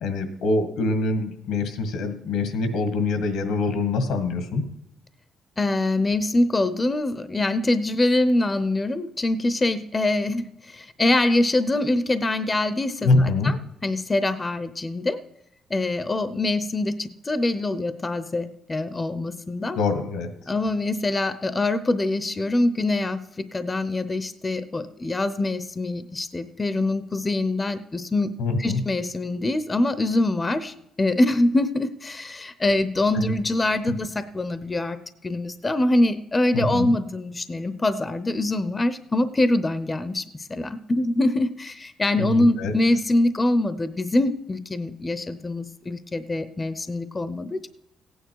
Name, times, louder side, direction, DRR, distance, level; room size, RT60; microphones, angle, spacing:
voice 1, 0.0-4.6 13.0-13.5 19.8-20.3 28.4-28.8 33.1-33.3 36.5-36.9 42.1-42.7, left 3 dB, 85° left, 8 dB, 1.8 m, -24 dB
voice 2, 5.6-13.6 13.8-15.2 15.7-19.8 20.5-28.3 28.6-35.0 35.2-47.7, left 2 dB, 25° left, 13 dB, 0.7 m, -24 dB
15.5 x 9.2 x 4.7 m, 0.83 s
cardioid pair, 90°, 0 cm